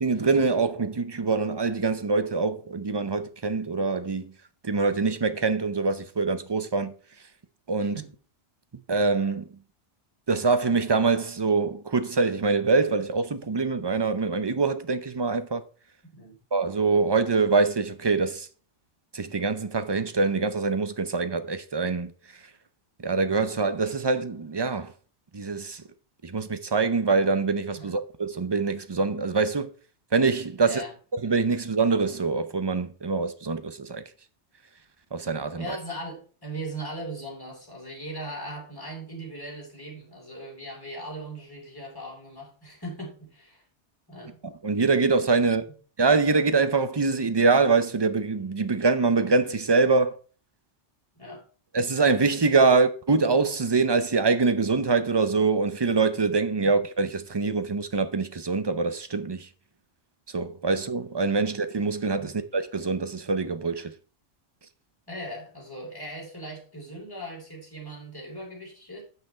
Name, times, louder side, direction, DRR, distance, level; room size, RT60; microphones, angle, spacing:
voice 1, 0.0-4.3 4.6-6.9 7.7-8.0 8.9-9.5 10.3-15.6 16.5-18.5 19.1-22.1 23.0-24.9 25.3-25.8 26.2-29.7 30.1-30.8 31.1-34.0 35.1-35.8 44.4-45.6 46.0-50.2 51.7-59.5 60.3-63.9, right 4 dB, 30° right, 0.6 m, -24 dB
voice 2, 7.8-8.1 16.1-16.4 27.7-28.0 30.6-30.9 35.5-43.6 44.1-44.4 45.4-45.5 51.2-51.4 62.2-62.4 65.1-69.0, right 1 dB, 20° left, 3.5 m, -39 dB
9.1 x 5.8 x 4.3 m
omnidirectional pair, 1.2 m